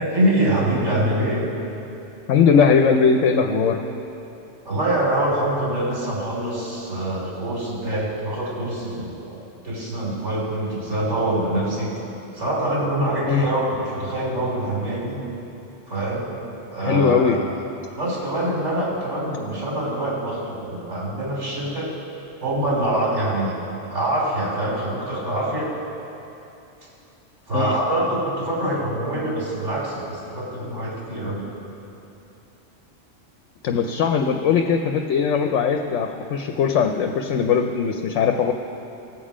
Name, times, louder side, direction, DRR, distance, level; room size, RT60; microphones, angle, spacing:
voice 1, 0.0-1.4 4.6-9.4 9.6-11.9 12.3-15.2 15.9-16.2 16.7-17.3 17.9-21.9 22.4-23.6 23.9-25.7 27.5-31.5, right 1 dB, 60° right, -4 dB, 3.1 m, -24 dB
voice 2, 2.3-3.8 13.3-13.5 16.8-17.4 27.5-27.7 33.6-38.5, left 6 dB, 70° left, 4 dB, 0.9 m, -19 dB
18.0 x 7.3 x 5.0 m, 2.9 s
omnidirectional pair, 1.4 m